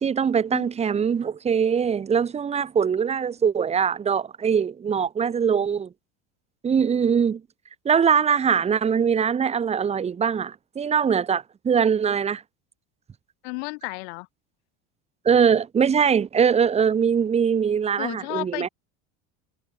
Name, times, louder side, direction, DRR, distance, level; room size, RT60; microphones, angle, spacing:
voice 1, 0.0-5.9 6.6-7.4 7.8-12.4 15.2-18.7, right 7 dB, 20° right, 1.0 m, -22 dB
voice 2, 13.4-14.3 18.0-18.7, left 29 dB, 80° left, 3.9 m, -33 dB
supercardioid pair, 135°, 32 cm